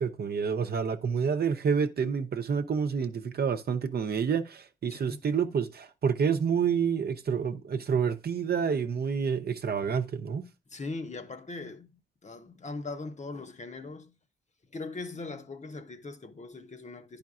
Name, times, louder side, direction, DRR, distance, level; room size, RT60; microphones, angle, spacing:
voice 1, 0.0-10.4, right 6 dB, 60° right, 0.7 m, -28 dB
voice 2, 4.9-5.2 10.7-11.9 12.2-14.1 14.7-17.2, left 3 dB, 40° left, 0.9 m, -40 dB
10.5 x 5.1 x 2.4 m
supercardioid pair, 45°, 19 cm